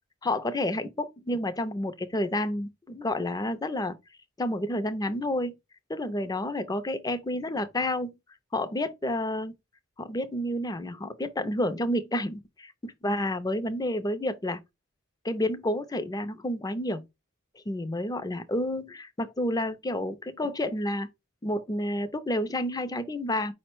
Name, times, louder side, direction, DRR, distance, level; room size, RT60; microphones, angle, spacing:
voice 1, 0.2-4.0 4.4-5.5 5.9-8.1 8.5-9.5 10.0-14.6 15.2-17.0 17.7-21.1 21.4-23.5, left 1 dB, 20° left, 0.5 m, -30 dB
5.0 x 2.1 x 4.5 m
head